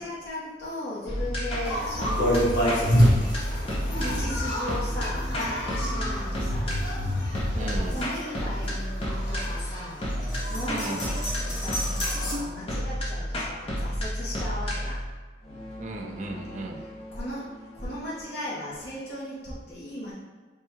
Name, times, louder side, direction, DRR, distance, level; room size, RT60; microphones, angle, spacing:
voice 1, 0.0-2.9 3.8-15.0 16.8-17.5 17.7-20.1, left 1 dB, 65° left, -7 dB, 1.0 m, -37 dB
sound 1, 1.1-18.2, equal, 30° left, 0.7 m, -32 dB
sound 2, 1.6-12.3, equal, 85° left, 1.0 m, -28 dB
voice 2, 7.5-8.1 10.7-11.1 12.1-12.5 15.8-16.9, right 1 dB, 40° right, 2 dB, 0.4 m, -35 dB
3.5 x 2.2 x 4.4 m, 1.3 s
head